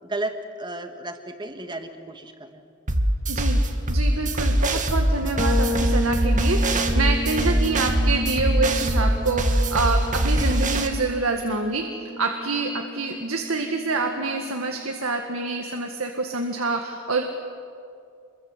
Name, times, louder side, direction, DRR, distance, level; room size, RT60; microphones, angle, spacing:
voice 1, 0.0-2.7 4.7-4.8, right 2 dB, 20° right, 6 dB, 1.8 m, -33 dB
sound 1, 2.9-10.9, right 1 dB, 35° right, 2.0 m, -22 dB
voice 2, 3.3-3.6 3.9-11.8 12.2-17.2, right 3 dB, 75° right, 3 dB, 1.9 m, -26 dB
Bass guitar, 5.4-15.0, right 1 dB, 50° left, 5.1 m, -33 dB
27.5 x 22.5 x 8.0 m, 2.4 s
head